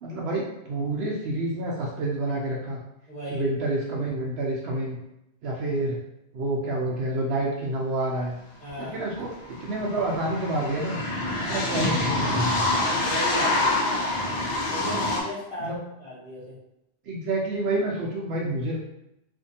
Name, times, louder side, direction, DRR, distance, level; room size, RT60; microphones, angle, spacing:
voice 1, 0.0-2.8 3.3-5.0 5.4-6.0 6.3-8.4 8.8-11.0 11.5-12.7 15.6-15.8 17.0-18.8, right 2 dB, 75° right, -2 dB, 0.8 m, -28 dB
voice 2, 3.1-3.5 8.6-9.0 13.0-13.7 14.7-15.7 16.0-16.6, left 1 dB, 5° left, -10 dB, 1.3 m, -35 dB
sound 1, 8.7-8.8 9.0-15.2, left 2 dB, 50° left, 0.6 m, -26 dB
2.6 x 2.5 x 2.7 m, 0.85 s
omnidirectional pair, 1.1 m